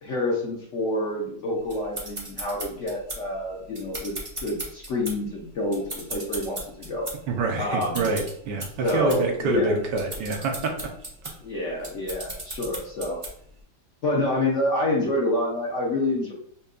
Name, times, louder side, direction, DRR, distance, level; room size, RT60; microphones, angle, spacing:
voice 1, 0.0-4.1 4.4-7.1 7.6-8.1 8.8-9.8 11.4-13.2 14.0-16.3, left 1 dB, 55° left, -2 dB, 0.9 m, -27 dB
sound 1, 1.7-13.6, right 1 dB, 30° right, 0.5 m, -38 dB
voice 2, 7.3-10.7, right 3 dB, 80° right, 2 dB, 1.4 m, -26 dB
5.4 x 2.3 x 2.4 m, 0.66 s
omnidirectional pair, 1.9 m